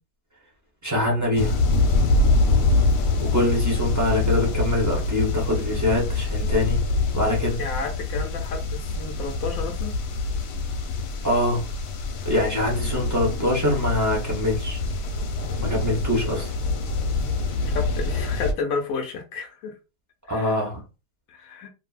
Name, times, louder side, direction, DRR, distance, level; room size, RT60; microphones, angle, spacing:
voice 1, 0.8-1.6 3.2-6.8 7.1-7.6 11.2-11.7 12.2-14.8 15.6-16.5 20.3-20.8, left 1 dB, 20° right, 0.5 m, -24 dB
sound 1, 1.3-18.5, left 3 dB, 80° left, 1.2 m, -25 dB
voice 2, 7.6-9.9 17.6-19.7 20.3-20.6 21.3-21.7, left 5 dB, 65° left, 1.0 m, -31 dB
2.7 x 2.6 x 2.4 m
omnidirectional pair, 1.8 m